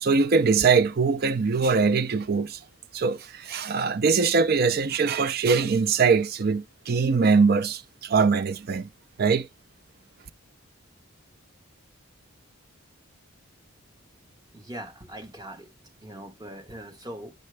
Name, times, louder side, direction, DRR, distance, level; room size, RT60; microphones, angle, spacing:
voice 1, 0.0-2.6 2.9-8.9 9.2-9.5, right 5 dB, 45° right, 0.4 m, -22 dB
voice 2, 14.5-15.7 16.0-17.3, right 1 dB, 20° right, 1.0 m, -41 dB
8.1 x 6.6 x 3.3 m
head